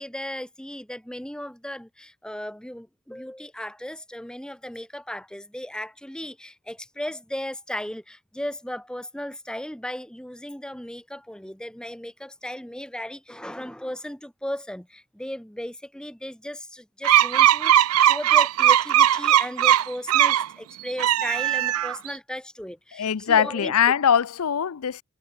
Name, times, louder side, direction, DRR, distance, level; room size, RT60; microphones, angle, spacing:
voice 1, 0.0-23.7, left 1 dB, 5° left, 1.2 m, -36 dB
sound 1, 17.0-20.5 20.9-22.1, right 11 dB, 80° right, 0.4 m, -19 dB
voice 2, 23.0-25.0, left 8 dB, 90° left, 0.5 m, -22 dB
head